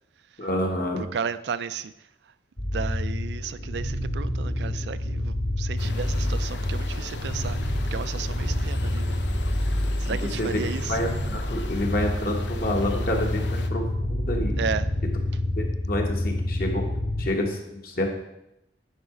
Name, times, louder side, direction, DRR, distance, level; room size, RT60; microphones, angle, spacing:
voice 1, 0.4-1.0 10.4-10.6 10.9-14.6 15.6-16.8 17.2-18.1, left 1 dB, 55° left, 1.4 m, -28 dB
voice 2, 1.0-1.9 2.7-9.2 9.6-9.7 10.0-11.1 14.6-14.9, right 6 dB, 70° right, 0.4 m, -34 dB
sound 1, 2.6-17.3, left 1 dB, 35° left, 0.9 m, -28 dB
sound 2, 5.8-13.7, left 3 dB, 85° left, 0.7 m, -40 dB
9.8 x 4.8 x 5.1 m
head